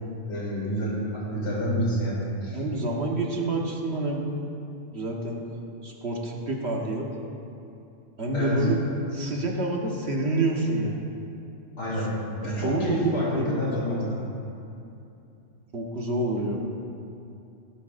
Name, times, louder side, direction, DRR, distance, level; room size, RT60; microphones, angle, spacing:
voice 1, 0.3-2.6 8.3-8.6 11.8-12.1 12.4-14.2, equal, 60° left, -6 dB, 3.4 m, -28 dB
voice 2, 2.5-4.2 4.9-5.4 5.8-7.1 8.2-8.8 9.1-11.0 12.4-13.7 15.7-16.6, right 2 dB, 50° right, -1 dB, 1.6 m, -27 dB
17.0 x 12.5 x 2.6 m, 2.7 s
omnidirectional pair, 1.4 m